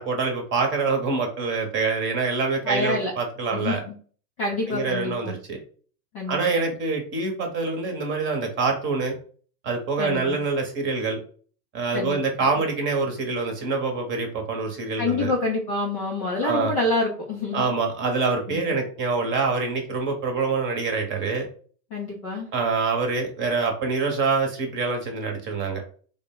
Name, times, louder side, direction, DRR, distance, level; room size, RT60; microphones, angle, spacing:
voice 1, 0.0-3.8 4.7-5.6 6.3-9.2 9.6-11.2 11.7-15.3 16.4-16.7 17.5-21.5 22.5-25.8, right 4 dB, 25° right, 3 dB, 0.9 m, -25 dB
voice 2, 2.6-3.1 3.5-3.9 4.4-5.3 6.1-6.7 10.0-10.4 11.9-12.5 15.0-17.6 18.5-18.8 21.9-22.5, left 2 dB, 25° left, -3 dB, 0.4 m, -27 dB
3.7 x 2.1 x 3.6 m, 0.43 s
hypercardioid pair, 125°, 50 cm